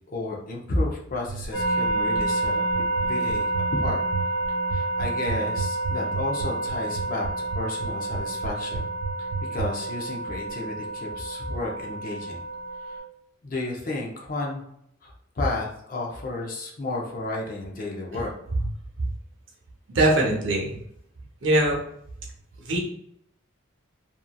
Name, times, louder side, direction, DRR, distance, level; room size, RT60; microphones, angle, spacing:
voice 1, 0.1-4.0 4.7-8.8 9.5-12.4 12.8-13.0 13.4-14.6 15.0-18.3, left 2 dB, 45° left, -1 dB, 0.6 m, -32 dB
sound 1, 1.3-9.7, right 5 dB, 85° right, 0.3 m, -31 dB
sound 2, 1.5-13.0, right 2 dB, 65° left, 1.1 m, -29 dB
voice 2, 19.9-20.8 21.4-21.8 22.6-22.8, right 1 dB, 65° right, -1 dB, 0.7 m, -22 dB
2.9 x 2.4 x 2.2 m, 0.72 s
head